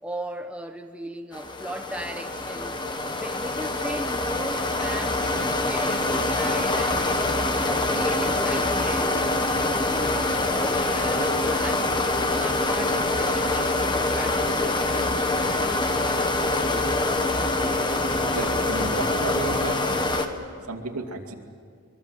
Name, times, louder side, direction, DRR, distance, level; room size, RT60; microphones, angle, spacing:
voice 1, 0.0-2.8 3.1-11.9 12.4-14.9, right 1 dB, 5° right, 0.8 m, -37 dB
sound 1, 1.3-20.3, left 2 dB, 20° left, 1.3 m, -25 dB
voice 2, 18.2-19.9 20.6-21.3, right 2 dB, 85° right, 2.6 m, -32 dB
24.0 x 23.5 x 7.5 m
head